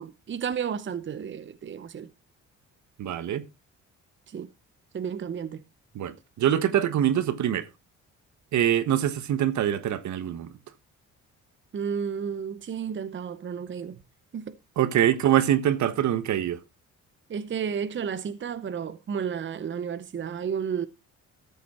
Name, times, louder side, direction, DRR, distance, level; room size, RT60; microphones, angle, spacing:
voice 1, 0.0-2.1 4.3-4.5 4.9-5.6 11.7-14.0 14.3-14.5 17.3-20.9, right 7 dB, 40° right, 0.8 m, -32 dB
voice 2, 3.0-3.5 5.9-7.7 8.5-10.5 14.8-16.6, right 10 dB, 70° right, 1.3 m, -24 dB
13.5 x 7.1 x 4.3 m
cardioid pair, 90°, 30 cm